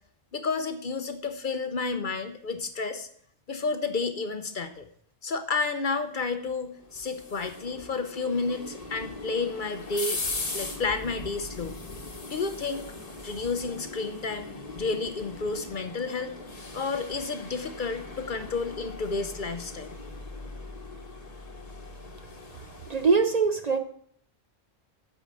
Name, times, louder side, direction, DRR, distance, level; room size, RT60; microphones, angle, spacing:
voice 1, 0.3-3.1 3.5-4.9 5.2-10.2 10.5-11.8 12.3-12.9 13.2-16.4 16.7-20.0, left 4 dB, 50° left, 8 dB, 0.9 m, -31 dB
sound 1, 6.5-23.2, left 2 dB, 35° left, 1.3 m, -40 dB
voice 2, 22.9-23.8, right 4 dB, 40° right, 6 dB, 0.8 m, -22 dB
8.9 x 5.0 x 7.5 m, 0.62 s
omnidirectional pair, 1.1 m